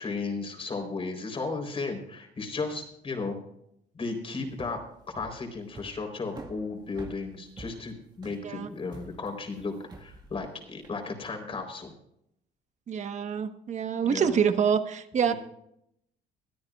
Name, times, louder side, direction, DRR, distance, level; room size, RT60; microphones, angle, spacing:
voice 1, 0.0-3.4 3.9-4.8 5.1-11.9 14.0-14.4 15.2-15.3, left 3 dB, 35° left, 3 dB, 4.0 m, -35 dB
sound 1, 4.5-11.0, right 3 dB, 25° right, 1.8 m, -47 dB
voice 2, 12.9-15.3, right 7 dB, 45° right, 9 dB, 1.3 m, -26 dB
22.0 x 13.0 x 2.5 m, 0.75 s
cardioid pair, 110°, 17 cm